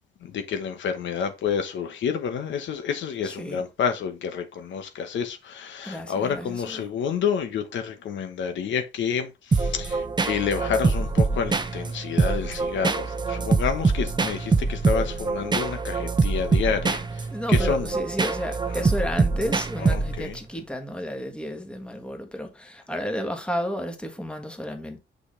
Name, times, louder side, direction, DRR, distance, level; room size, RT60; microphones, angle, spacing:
voice 1, 0.2-17.9 18.8-18.9 19.8-20.4, left 7 dB, 70° left, 1.1 m, -29 dB
voice 2, 3.2-3.6 5.8-6.9 17.3-25.0, equal, 5° left, 1.5 m, -32 dB
sound 1, 9.5-20.4, right 4 dB, 20° right, 0.8 m, -24 dB
6.3 x 5.2 x 3.2 m
cardioid pair, 90°, 20 cm